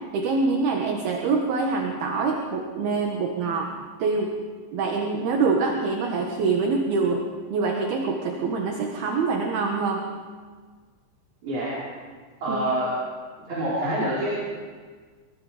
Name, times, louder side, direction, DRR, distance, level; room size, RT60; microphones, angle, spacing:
voice 1, 0.1-3.7 4.0-4.3 4.7-7.2 7.5-10.0 12.5-12.6, right 4 dB, 65° right, 1 dB, 3.3 m, -25 dB
voice 2, 11.4-11.7 12.4-12.9 13.5-14.3, right 1 dB, 40° right, -6 dB, 5.9 m, -26 dB
29.5 x 22.5 x 5.1 m, 1.5 s
omnidirectional pair, 5.2 m